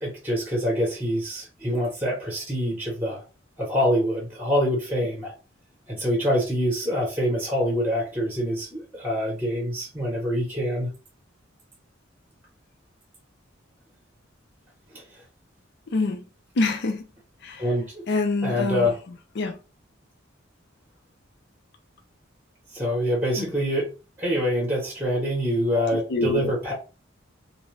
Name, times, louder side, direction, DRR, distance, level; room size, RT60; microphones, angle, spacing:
voice 1, 0.0-3.2 3.6-5.3 5.9-10.9 14.9-15.0 17.6-18.0 18.4-19.0 22.7-23.9 24.2-26.7, equal, 10° right, 0.8 m, -25 dB
voice 2, 15.9-16.2 16.6-17.0 17.4-17.7 18.1-18.9 19.4-19.6 23.4-23.5 25.7-26.5, left 3 dB, 60° left, 0.5 m, -26 dB
2.5 x 2.2 x 3.1 m
head